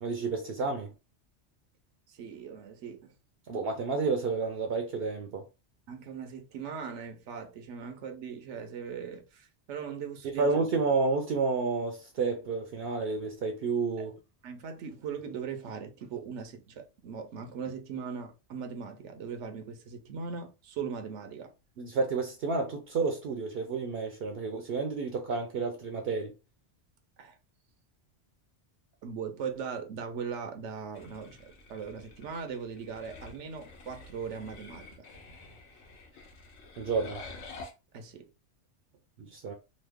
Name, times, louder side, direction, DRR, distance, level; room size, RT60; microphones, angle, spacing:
voice 1, 0.0-0.9 3.5-5.4 10.4-14.1 21.8-26.3 36.8-37.2 39.2-39.5, right 4 dB, 65° right, 0.7 m, -30 dB
voice 2, 2.1-3.1 5.9-10.7 14.0-14.1 14.4-21.5 27.2-27.4 29.0-35.1 37.9-38.3, right 6 dB, 85° right, 1.0 m, -39 dB
sound 1, 30.9-37.7, left 3 dB, 70° left, 1.0 m, -49 dB
3.0 x 2.1 x 3.4 m
omnidirectional pair, 1.2 m